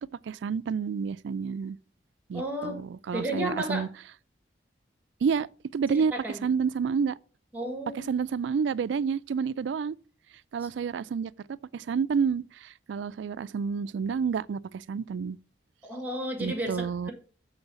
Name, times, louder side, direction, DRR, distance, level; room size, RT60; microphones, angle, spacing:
voice 1, 0.2-1.8 2.3-3.9 5.2-5.5 5.7-6.1 6.4-7.2 8.0-10.0 10.5-11.3 11.7-15.4 16.4-17.1, right 6 dB, 75° right, 0.3 m, -29 dB
voice 2, 2.3-2.8 3.1-3.9 5.9-6.4 7.5-8.1 15.8-17.1, equal, 10° right, 1.9 m, -33 dB
8.0 x 3.9 x 6.8 m
head